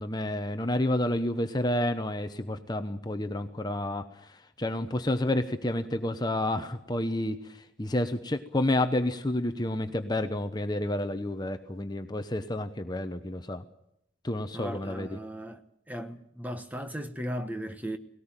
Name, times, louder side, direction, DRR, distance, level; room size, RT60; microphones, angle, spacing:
voice 1, 0.0-13.6 14.2-15.2, left 1 dB, 20° left, 0.9 m, -30 dB
voice 2, 14.5-15.6 15.9-18.0, equal, 10° right, 1.1 m, -36 dB
18.5 x 18.0 x 8.9 m
head